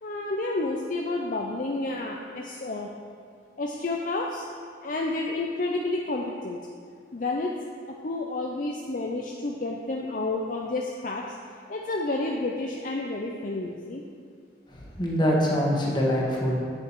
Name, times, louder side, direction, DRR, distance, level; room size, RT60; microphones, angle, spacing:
voice 1, 0.0-2.9 3.6-4.4 4.8-6.6 7.1-7.5 7.9-11.4 11.7-14.0, left 2 dB, 45° left, 0 dB, 0.5 m, -30 dB
voice 2, 14.7-16.6, equal, 25° left, -3 dB, 1.5 m, -24 dB
8.8 x 7.1 x 4.6 m, 2.2 s
head